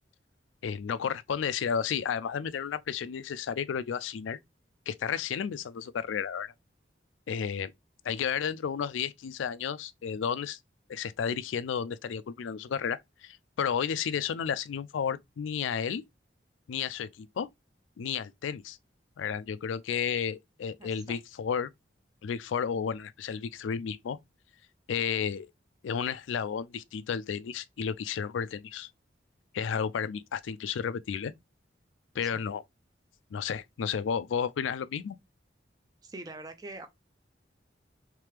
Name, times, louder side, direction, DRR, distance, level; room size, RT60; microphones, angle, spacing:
voice 1, 0.6-4.4 4.9-6.5 7.3-7.7 8.0-10.6 10.9-16.0 16.7-17.5 18.0-18.8 19.2-21.7 22.2-24.2 24.9-25.5 25.8-28.9 29.5-31.3 32.1-32.6 33.3-35.2, left 7 dB, 90° left, 0.4 m, -32 dB
voice 2, 20.8-21.2 32.2-32.4 36.0-36.9, right 2 dB, 20° right, 0.5 m, -44 dB
3.4 x 3.3 x 3.2 m
head